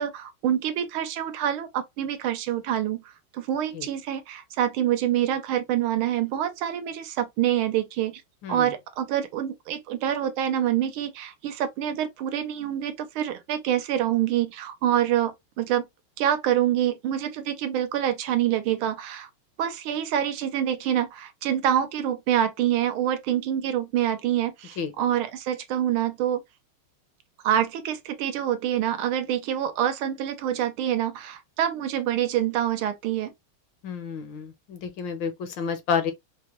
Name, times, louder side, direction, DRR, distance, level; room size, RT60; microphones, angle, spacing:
voice 1, 0.0-3.0 3.3-8.2 8.5-15.9 16.2-19.3 19.6-26.4 27.4-33.3, right 11 dB, 80° right, 1.5 m, -26 dB
voice 2, 33.8-36.1, left 6 dB, 70° left, 1.3 m, -30 dB
4.6 x 2.1 x 2.9 m
omnidirectional pair, 2.4 m